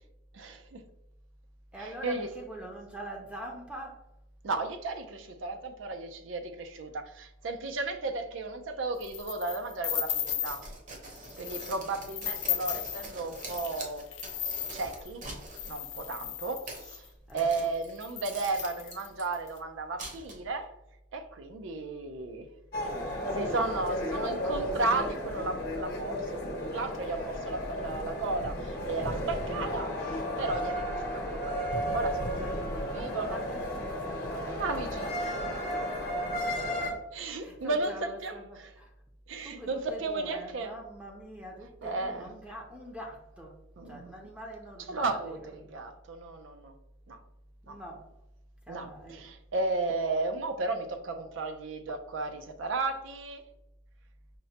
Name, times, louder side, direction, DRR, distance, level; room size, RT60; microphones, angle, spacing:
voice 1, 0.3-0.8 2.0-2.3 4.4-10.6 11.4-14.1 14.7-15.2 15.7-17.0 17.3-20.7 21.1-22.5 23.3-26.4 26.7-32.4 32.9-33.4 34.5-35.4 37.1-38.3 39.3-40.7 41.8-42.3 43.8-44.1 44.9-46.7 47.1-47.2 47.7-47.8 48.7-53.4, right 3 dB, 90° right, 0.5 m, -34 dB
voice 2, 1.7-4.1 17.3-17.5 32.4-35.7 36.5-36.9 37.3-38.9 39.4-43.6 43.8-45.7 47.6-48.1 48.6-49.4, right 1 dB, 5° right, 0.5 m, -44 dB
sound 1, 9.0-10.7 11.2-11.7 12.0-17.1 17.6-17.7 18.0-19.5, left 11 dB, 85° left, 0.5 m, -36 dB
sound 2, 10.3-15.7 16.5-16.9 17.3-17.9 18.2-19.2 20.0-20.6, right 2 dB, 40° right, 0.7 m, -44 dB
sound 3, 22.7-36.9, equal, 55° left, 0.8 m, -33 dB
5.2 x 2.1 x 2.7 m
head